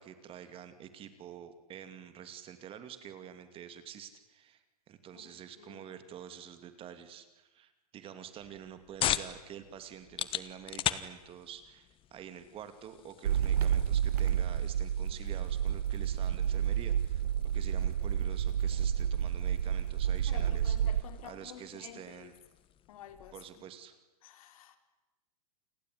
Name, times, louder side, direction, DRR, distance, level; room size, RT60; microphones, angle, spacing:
voice 1, 0.0-17.2 17.5-20.8 21.2-22.3 23.3-24.0, right 9 dB, 30° right, 10 dB, 2.5 m, -48 dB
voice 2, 5.1-5.9 20.3-22.3 22.9-23.4 24.2-24.8, left 9 dB, 65° left, 9 dB, 3.7 m, -51 dB
sound 1, 8.4-23.5, left 11 dB, 25° left, 1.4 m, -42 dB
sound 2, 13.2-21.0, right 9 dB, 85° right, 1.1 m, -30 dB
29.0 x 21.0 x 9.6 m, 1.1 s
hypercardioid pair, 130°, 20 cm